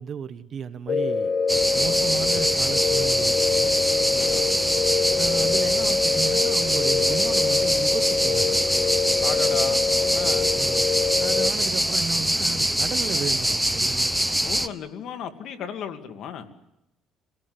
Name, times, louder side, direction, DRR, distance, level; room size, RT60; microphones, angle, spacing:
voice 1, 0.0-1.3 1.7-3.7 5.2-8.6 10.5-10.9 11.2-14.1, right 7 dB, 45° right, 12 dB, 1.3 m, -34 dB
sound 1, 0.9-11.5, left 5 dB, 45° left, 1.0 m, -25 dB
sound 2, 1.5-14.7, right 1 dB, 5° right, 0.9 m, -24 dB
voice 2, 4.1-4.5 9.2-9.8 10.1-10.5 14.4-16.5, left 7 dB, 65° left, 7 dB, 2.4 m, -35 dB
26.5 x 18.0 x 9.7 m, 0.85 s
cardioid pair, 120°, 0 cm